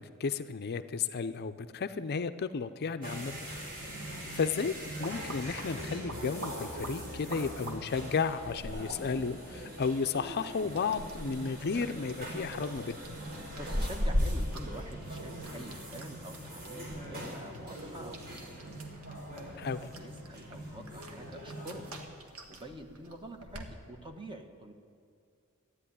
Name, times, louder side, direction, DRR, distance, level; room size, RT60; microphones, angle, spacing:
voice 1, 0.0-3.5 4.0-13.0 19.6-19.8, left 5 dB, 50° left, 11 dB, 0.5 m, -33 dB
sound 1, 3.0-22.0, right 1 dB, 45° right, 3.8 m, -42 dB
sound 2, 4.7-23.7, equal, 80° right, 1.6 m, -41 dB
voice 2, 13.6-18.6 19.4-21.9 22.2-24.7, right 1 dB, 25° right, 5 dB, 1.2 m, -47 dB
13.5 x 9.9 x 9.9 m, 2.4 s
head